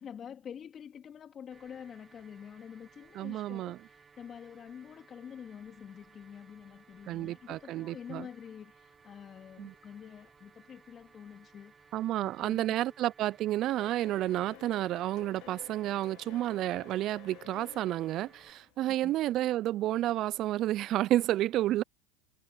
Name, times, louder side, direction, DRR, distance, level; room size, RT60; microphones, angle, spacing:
voice 1, 0.0-12.8 18.9-19.1, left 8 dB, 35° left, 2.9 m, -47 dB
sound 1, 1.5-18.5, right 5 dB, 20° right, 1.9 m, -60 dB
voice 2, 3.2-3.8 7.1-8.3 9.6-9.7 11.9-21.8, right 14 dB, 50° right, 0.5 m, -31 dB
sound 2, 13.6-19.4, left 20 dB, 60° left, 1.8 m, -53 dB
hypercardioid pair, 90°, 0 cm